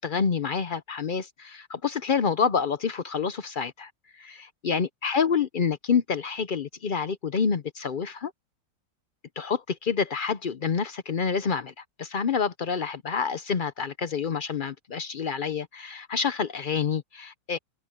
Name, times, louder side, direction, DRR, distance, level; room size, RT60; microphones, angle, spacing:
voice 1, 0.0-3.9 4.2-8.3 9.4-17.6, left 6 dB, 65° left, 0.5 m, -28 dB
omnidirectional pair, 1.8 m